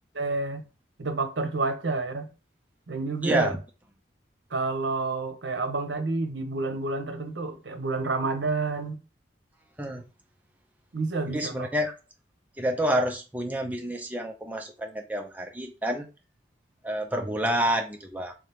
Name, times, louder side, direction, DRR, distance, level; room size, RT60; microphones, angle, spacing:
voice 1, 0.1-0.7 1.0-2.3 2.9-3.6 4.5-9.0 10.9-11.7, right 3 dB, 70° right, 0.8 m, -29 dB
voice 2, 3.2-3.6 9.8-10.1 11.3-11.9 12.6-16.1 16.8-18.3, equal, 10° right, 0.4 m, -28 dB
3.6 x 2.8 x 3.4 m
head